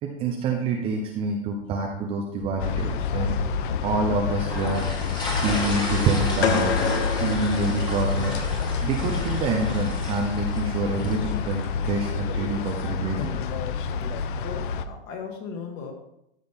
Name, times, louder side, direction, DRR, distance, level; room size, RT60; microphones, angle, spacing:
voice 1, 0.0-3.4 3.8-4.9 5.4-6.9 7.1-13.4, right 3 dB, 15° right, 1 dB, 0.7 m, -27 dB
sound 1, 2.6-14.9, left 5 dB, 50° left, 0.7 m, -28 dB
sound 2, 4.3-11.6, left 1 dB, 15° left, 1.7 m, -33 dB
sound 3, 6.4-8.5, left 7 dB, 90° left, 1.2 m, -28 dB
voice 2, 13.9-15.9, left 6 dB, 30° left, 3 dB, 1.7 m, -38 dB
13.0 x 6.2 x 3.6 m, 0.79 s
hypercardioid pair, 160°, 32 cm